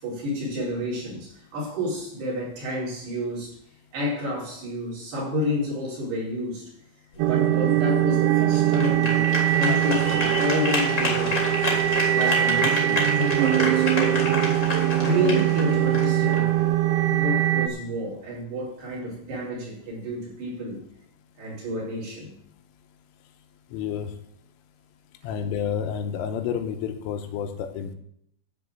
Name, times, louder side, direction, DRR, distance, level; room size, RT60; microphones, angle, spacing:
voice 1, 0.0-3.6 3.9-6.7 7.2-11.4 12.0-14.2 15.0-16.6 17.1-20.8 21.4-22.3, left 1 dB, 55° right, -6 dB, 6.4 m, -30 dB
sound 1, 7.1-17.2, left 2 dB, 25° left, 1.6 m, -30 dB
sound 2, 7.2-17.7, right 13 dB, 80° right, 2.8 m, -22 dB
voice 2, 23.7-24.1 25.2-28.0, left 8 dB, 80° left, 6 dB, 3.5 m, -30 dB
12.5 x 4.9 x 8.0 m, 0.71 s
omnidirectional pair, 5.8 m